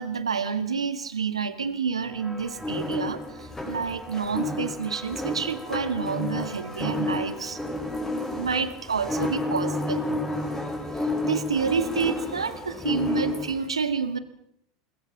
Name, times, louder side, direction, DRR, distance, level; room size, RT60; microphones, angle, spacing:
voice 1, 0.0-7.6 8.4-10.0 10.9-14.2, right 6 dB, 85° right, 12 dB, 1.7 m, -29 dB
sound 1, 2.0-12.2, right 1 dB, 5° right, 5.0 m, -43 dB
sound 2, 2.4-13.7, left 2 dB, 15° left, 5.6 m, -31 dB
27.0 x 20.5 x 6.0 m, 0.71 s
hypercardioid pair, 80°, 3 cm